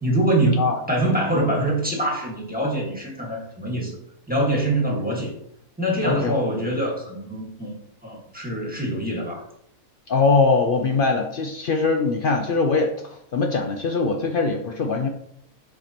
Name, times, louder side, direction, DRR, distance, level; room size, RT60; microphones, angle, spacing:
voice 1, 0.0-3.9 4.3-5.3 5.8-7.8 8.0-9.5, right 1 dB, 5° right, -3 dB, 1.5 m, -24 dB
voice 2, 6.0-6.4 10.1-12.9 13.3-15.1, left 4 dB, 75° left, 3 dB, 0.5 m, -21 dB
7.6 x 4.8 x 2.9 m, 0.73 s
omnidirectional pair, 1.6 m